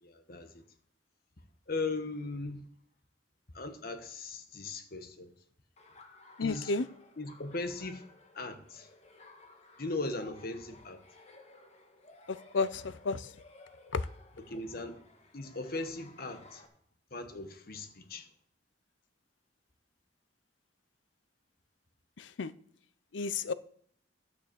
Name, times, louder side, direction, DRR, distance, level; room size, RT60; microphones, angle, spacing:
voice 1, 0.0-0.6 1.7-2.7 3.5-5.3 6.4-6.7 7.2-8.1 8.3-8.9 9.8-11.0 14.5-15.0 15.3-16.7 17.1-18.3, left 3 dB, 55° left, 1.3 m, -38 dB
Laughter, 5.8-16.7, left 2 dB, 35° left, 1.5 m, -57 dB
voice 2, 6.4-6.9 12.3-13.3 13.9-14.1 22.2-22.5 23.1-23.5, left 4 dB, 80° left, 0.6 m, -32 dB
11.5 x 6.7 x 6.9 m
head